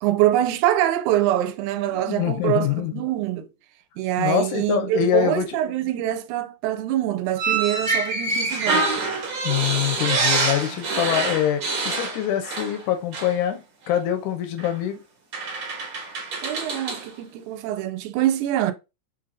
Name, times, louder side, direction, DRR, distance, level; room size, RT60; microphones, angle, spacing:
voice 1, 0.0-3.5 4.0-8.8 10.9-11.0 16.4-18.7, right 12 dB, 85° right, 2.0 m, -24 dB
voice 2, 1.9-3.0 4.2-5.6 9.4-15.0, left 11 dB, 85° left, 2.2 m, -24 dB
sound 1, 7.4-12.8 13.1-13.4 14.6-14.7 15.3-17.1, right 3 dB, 55° right, 1.5 m, -26 dB
5.5 x 2.7 x 2.6 m
omnidirectional pair, 3.4 m